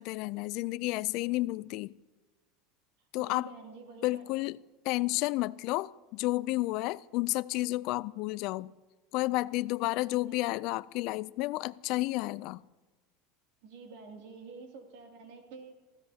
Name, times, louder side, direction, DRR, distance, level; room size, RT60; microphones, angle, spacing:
voice 1, 0.0-1.9 3.1-3.5 4.0-4.5 4.9-8.7 9.1-12.6, left 19 dB, 55° left, 0.3 m, -31 dB
voice 2, 3.2-4.3 10.0-10.4 13.6-16.0, right 4 dB, 70° right, 2.5 m, -49 dB
20.0 x 16.0 x 2.8 m
supercardioid pair, 150°, 0 cm